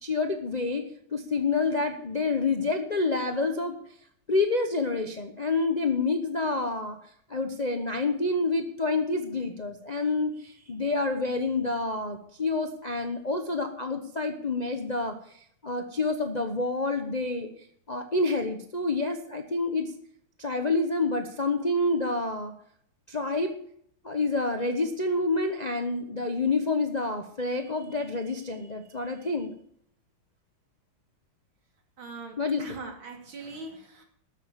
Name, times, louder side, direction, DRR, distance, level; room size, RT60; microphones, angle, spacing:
voice 1, 0.0-3.7 4.3-7.0 7.3-17.5 17.9-19.9 20.4-22.5 23.1-23.5 24.0-29.5 32.4-32.8, left 3 dB, 35° left, 5 dB, 0.6 m, -28 dB
voice 2, 32.0-34.0, right 3 dB, 75° right, 2 dB, 3.2 m, -41 dB
13.0 x 7.5 x 7.4 m, 0.66 s
omnidirectional pair, 2.2 m